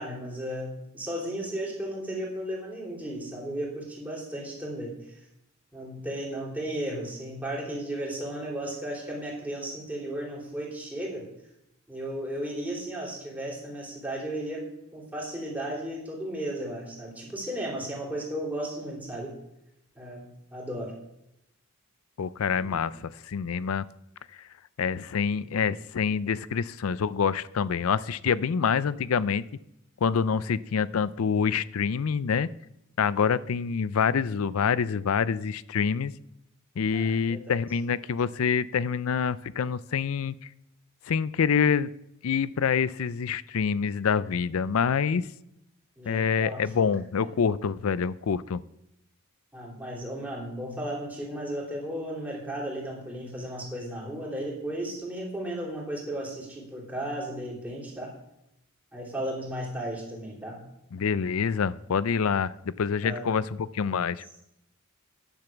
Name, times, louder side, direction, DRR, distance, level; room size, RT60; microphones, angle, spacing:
voice 1, 0.0-4.9 5.7-11.2 11.9-14.6 14.9-19.3 19.9-20.9 22.6-22.9 25.4-25.7 36.9-37.6 46.0-46.9 49.5-58.1 58.9-60.6 63.0-63.2, right 1 dB, 10° right, -3 dB, 3.4 m, -35 dB
voice 2, 22.2-23.8 24.8-29.4 30.0-32.5 33.0-36.1 36.8-40.4 41.1-41.9 42.2-45.3 46.1-48.6 60.9-64.2, left 6 dB, 75° left, 18 dB, 0.4 m, -26 dB
10.0 x 6.9 x 7.2 m, 0.82 s
head